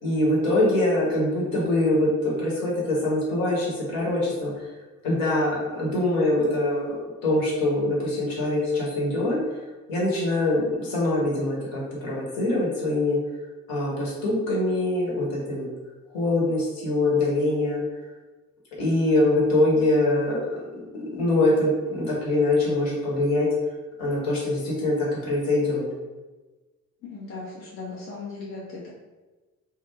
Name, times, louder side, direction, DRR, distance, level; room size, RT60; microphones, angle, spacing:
voice 1, 0.0-4.7 5.0-9.4 9.9-13.2 13.7-15.7 16.1-17.8 18.8-20.8 21.1-23.5 24.0-25.8, left 2 dB, 55° left, -5 dB, 1.1 m, -24 dB
voice 2, 27.0-28.9, left 3 dB, 30° left, -6 dB, 0.7 m, -37 dB
2.3 x 2.2 x 3.3 m, 1.2 s
figure-of-eight pair, 50°, 42 cm